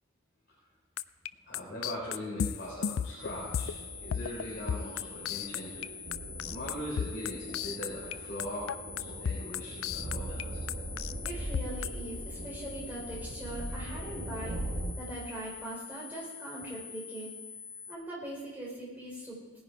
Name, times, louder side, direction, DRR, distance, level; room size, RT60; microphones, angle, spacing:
sound 1, 1.0-3.8 4.1-4.4 4.7-5.9 6.1-8.1 8.4-10.4 10.7-11.9, left 8 dB, 85° left, 0.4 m, -33 dB
voice 1, 1.5-5.9 6.4-8.7 9.0-10.4 13.7-14.0, equal, 50° left, -8 dB, 4.0 m, -40 dB
sound 2, 3.2-17.9, left 5 dB, 30° left, 2.4 m, -46 dB
sound 3, 3.3-14.9, right 1 dB, 50° right, 1.2 m, -41 dB
voice 2, 11.2-14.6 15.0-17.3 17.9-19.6, right 1 dB, 10° right, -5 dB, 4.2 m, -41 dB
18.0 x 10.5 x 4.7 m, 1.2 s
head